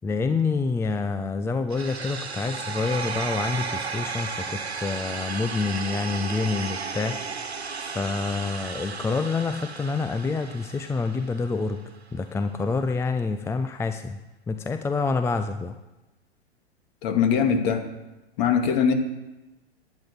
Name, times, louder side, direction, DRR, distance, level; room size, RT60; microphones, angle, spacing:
voice 1, 0.0-7.2 7.8-11.8 12.1-14.2 14.5-15.8, left 4 dB, 10° left, 8 dB, 0.6 m, -27 dB
sound 1, 1.7-11.7, right 5 dB, 80° right, 1.5 m, -34 dB
voice 2, 17.0-17.8 18.4-18.9, left 7 dB, 45° left, 5 dB, 2.6 m, -21 dB
11.5 x 9.4 x 9.6 m, 1.0 s
figure-of-eight pair, 100°, 31 cm